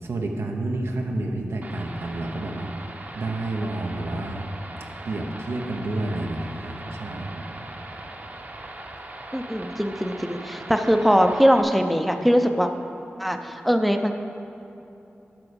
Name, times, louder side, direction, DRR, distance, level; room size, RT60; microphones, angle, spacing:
voice 1, 0.0-2.7 3.1-4.4 5.0-7.4, right 2 dB, 85° right, 2 dB, 1.0 m, -29 dB
sound 1, 1.6-11.6, right 2 dB, 45° right, 0.9 m, -40 dB
voice 2, 9.3-12.7 13.2-14.1, equal, ahead, 5 dB, 0.6 m, -21 dB
10.5 x 4.8 x 7.0 m, 2.9 s
cardioid pair, 60°, 4 cm